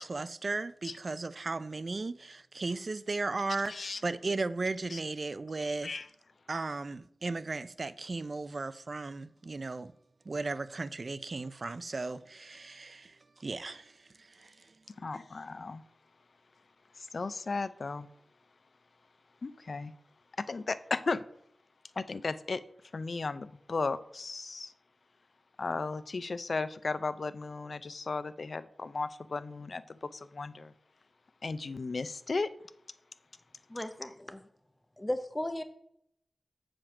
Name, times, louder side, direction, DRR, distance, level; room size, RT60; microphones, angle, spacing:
voice 1, 0.0-6.0 6.5-9.9 10.3-13.9 14.2-14.7, right 3 dB, 50° right, 0.4 m, -36 dB
voice 2, 3.7-4.0 4.9-5.0 5.8-6.1 15.0-15.8 17.0-18.1 19.4-19.9 20.4-21.2 22.0-22.6 22.9-24.7 25.6-30.7 31.4-32.5, left 3 dB, 60° left, 0.4 m, -35 dB
voice 3, 33.7-34.4 35.0-35.6, left 1 dB, 15° left, 0.7 m, -35 dB
7.4 x 5.1 x 5.9 m
wide cardioid pair, 95°, 0 cm